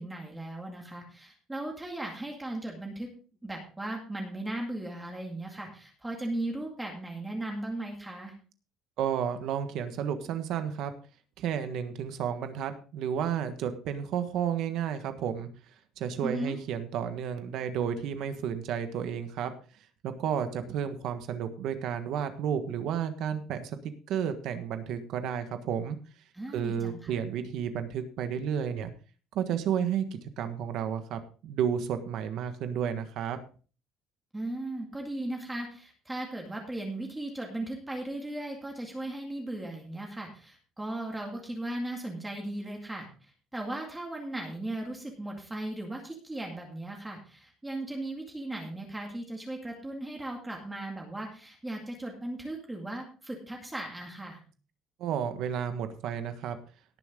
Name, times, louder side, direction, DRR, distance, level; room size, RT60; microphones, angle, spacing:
voice 1, 0.0-3.1 3.4-8.3 16.2-16.6 26.3-27.2 34.3-54.4, right 1 dB, 10° right, 0 dB, 2.2 m, -37 dB
voice 2, 9.0-10.9 11.4-15.5 16.0-19.5 20.0-23.8 24.1-26.0 26.5-28.9 29.3-33.4 55.0-56.6, right 8 dB, 55° right, 9 dB, 1.4 m, -32 dB
18.0 x 7.2 x 3.7 m, 0.37 s
cardioid pair, 175°, 0 cm